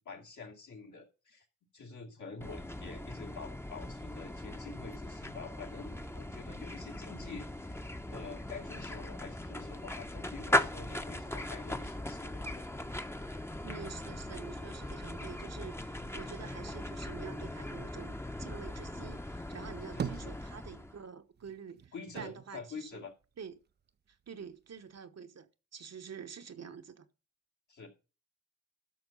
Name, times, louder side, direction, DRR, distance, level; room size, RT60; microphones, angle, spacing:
voice 1, 0.0-1.5 1.7-12.6 16.0-16.1 19.9-20.3 21.9-23.1 27.7-27.9, left 4 dB, 75° left, 2.7 m, -47 dB
sound 1, 2.4-21.0, left 1 dB, 10° left, 0.8 m, -39 dB
voice 2, 13.6-23.1 23.4-23.6 24.3-27.1, right 6 dB, 55° right, 1.1 m, -47 dB
sound 2, 19.5-21.0 21.3-23.7 24.1-25.0, right 7 dB, 35° right, 0.4 m, -43 dB
12.5 x 6.0 x 5.4 m
cardioid pair, 80°, 30 cm